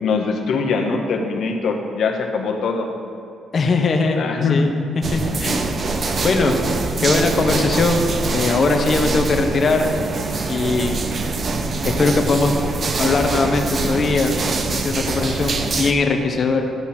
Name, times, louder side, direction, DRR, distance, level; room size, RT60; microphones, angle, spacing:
voice 1, 0.0-2.9 4.2-4.6, left 4 dB, 70° left, 2 dB, 1.4 m, -22 dB
voice 2, 3.5-4.7 5.1-5.6 6.2-6.5 7.0-9.9 10.5-11.0 11.8-12.7 13.0-14.3 14.7-16.6, left 3 dB, 45° left, 4 dB, 1.2 m, -20 dB
sound 1, 5.0-15.9, right 3 dB, 45° right, 0.8 m, -24 dB
12.5 x 8.2 x 4.4 m, 2.6 s
cardioid pair, 90°, 0 cm